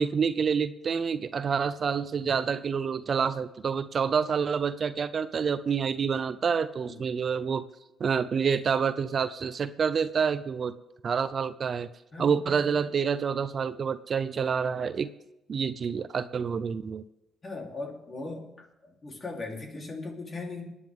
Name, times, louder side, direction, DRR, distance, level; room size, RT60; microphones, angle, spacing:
voice 1, 0.0-7.6 8.0-10.8 11.0-11.9 12.2-15.1 15.5-17.0, right 6 dB, 50° right, 13 dB, 0.6 m, -28 dB
voice 2, 12.1-12.8 17.4-20.7, left 3 dB, 35° left, 0 dB, 3.6 m, -39 dB
28.0 x 9.7 x 3.7 m, 0.92 s
cardioid pair, 90°, 0 cm